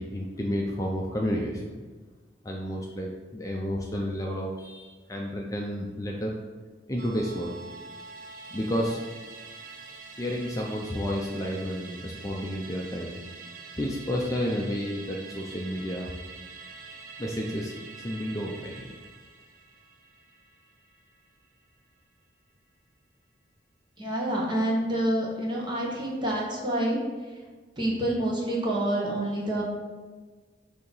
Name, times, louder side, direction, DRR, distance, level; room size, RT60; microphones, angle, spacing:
voice 1, 0.0-1.8 2.4-6.3 6.9-7.6 8.3-9.0 9.4-9.6 10.2-13.2 13.7-16.1 17.2-18.9, equal, 20° left, -1 dB, 0.5 m, -31 dB
Musical instrument, 7.0-21.7 22.0-22.1, right 4 dB, 50° right, 0.6 m, -46 dB
voice 2, 24.0-27.4 27.8-29.6, right 1 dB, 25° right, -3 dB, 1.2 m, -28 dB
6.4 x 2.9 x 5.4 m, 1.4 s
head